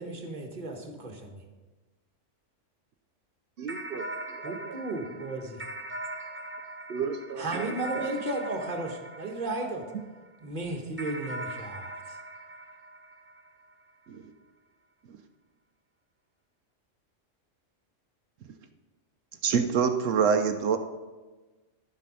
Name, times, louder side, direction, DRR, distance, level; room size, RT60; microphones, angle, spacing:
voice 1, 0.0-1.4 4.4-5.6 7.4-9.8 10.4-12.2, right 2 dB, 40° right, 2 dB, 1.5 m, -34 dB
voice 2, 3.6-4.8 6.9-7.6 7.9-8.1, right 6 dB, 55° right, 3 dB, 0.8 m, -36 dB
sound 1, 3.7-10.3 11.0-13.7, right 1 dB, 10° right, 0.9 m, -40 dB
voice 3, 19.4-20.8, right 6 dB, 85° right, 7 dB, 1.1 m, -24 dB
11.0 x 7.5 x 5.5 m, 1.2 s
omnidirectional pair, 1.3 m